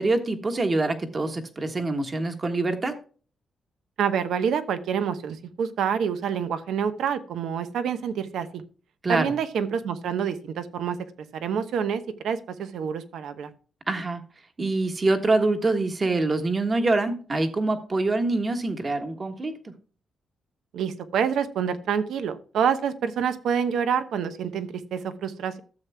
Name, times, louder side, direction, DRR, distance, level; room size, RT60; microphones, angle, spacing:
voice 1, 0.0-2.9 9.0-9.3 13.9-14.2 14.6-19.7, right 2 dB, 30° right, 6 dB, 1.4 m, -25 dB
voice 2, 4.0-8.6 9.1-11.0 11.3-13.5 20.7-25.6, right 7 dB, 80° right, 10 dB, 0.9 m, -27 dB
13.5 x 7.5 x 2.2 m, 0.39 s
cardioid pair, 120°, 0 cm